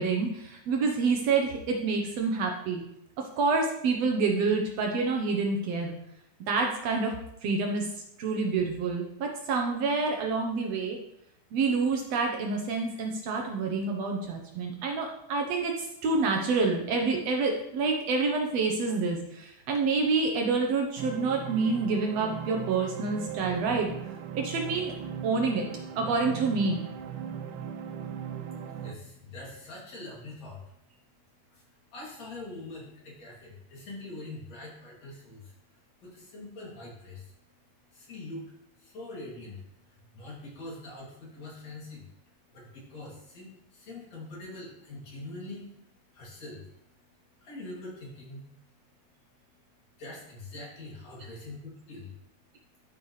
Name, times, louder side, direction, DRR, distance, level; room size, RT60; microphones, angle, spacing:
voice 1, 0.0-2.8 3.4-5.9 6.5-7.1 7.4-7.9 8.2-11.0 11.5-23.9 24.3-24.9 25.2-25.7 26.0-26.9, right 4 dB, 70° right, 2 dB, 1.8 m, -27 dB
sound 1, 21.0-29.0, right 8 dB, 85° right, 2.1 m, -38 dB
voice 2, 28.7-30.6 31.5-31.6 31.9-35.5 36.0-37.3 37.9-38.5 38.8-39.6 40.1-42.1 42.5-45.7 46.1-46.6 47.4-48.4 50.0-52.1, left 2 dB, 60° left, -5 dB, 3.8 m, -43 dB
12.5 x 5.4 x 3.2 m, 0.79 s
omnidirectional pair, 3.4 m